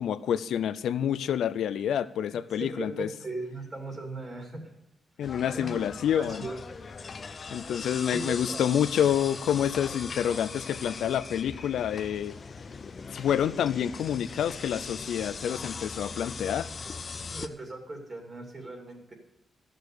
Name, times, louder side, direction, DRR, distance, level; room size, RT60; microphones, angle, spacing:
voice 1, 0.0-3.1 5.2-6.4 7.5-12.3 13.1-16.7, left 9 dB, 85° left, 15 dB, 0.5 m, -28 dB
voice 2, 2.3-4.6 5.5-6.6 8.1-8.6 10.2-10.5 17.3-19.1, right 2 dB, 25° right, 2 dB, 2.6 m, -39 dB
sound 1, 5.2-17.5, left 4 dB, 35° left, 0.6 m, -40 dB
13.5 x 6.5 x 6.7 m, 0.84 s
wide cardioid pair, 145°, 0 cm